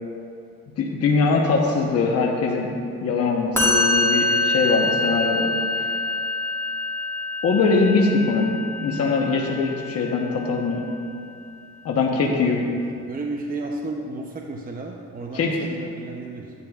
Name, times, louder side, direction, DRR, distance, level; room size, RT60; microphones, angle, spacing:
voice 1, 0.8-2.7 3.0-5.5 5.8-5.9 7.4-10.9 11.8-12.6 15.3-15.5, left 4 dB, 55° left, -1 dB, 0.9 m, -22 dB
Musical instrument, 3.5-10.8, left 2 dB, 10° left, 2.1 m, -25 dB
voice 2, 12.2-12.5 13.1-16.5, right 2 dB, 30° right, 1 dB, 0.6 m, -33 dB
11.5 x 9.5 x 2.4 m, 2.5 s
cardioid pair, 90°, 30 cm